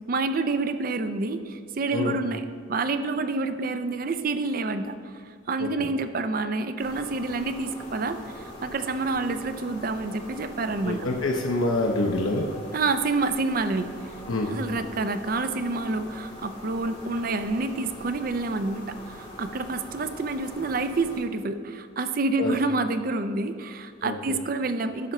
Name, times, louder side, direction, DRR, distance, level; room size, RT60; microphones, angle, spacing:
voice 1, 0.1-2.4 2.7-11.1 12.7-13.9 14.5-25.1, right 3 dB, 45° right, 10 dB, 0.4 m, -28 dB
sound 1, 6.8-21.2, equal, 25° left, 2.0 m, -42 dB
voice 2, 10.8-12.5 14.3-14.5 22.4-22.5 24.0-24.4, left 2 dB, 80° left, 1 dB, 0.8 m, -26 dB
10.5 x 4.3 x 6.5 m, 2.2 s
head